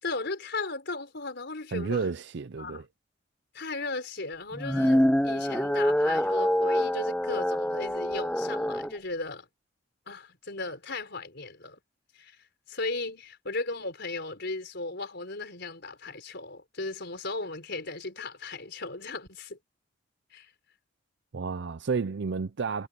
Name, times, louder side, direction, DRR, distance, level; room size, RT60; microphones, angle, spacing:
voice 1, 0.0-2.1 2.6-2.8 3.5-9.5 10.1-11.8 12.1-19.6 20.3-20.5, left 3 dB, 60° left, 4.8 m, -36 dB
voice 2, 1.7-2.9 21.3-22.9, right 5 dB, 60° right, 0.5 m, -31 dB
sound 1, 4.5-8.9, equal, 5° left, 0.7 m, -26 dB
head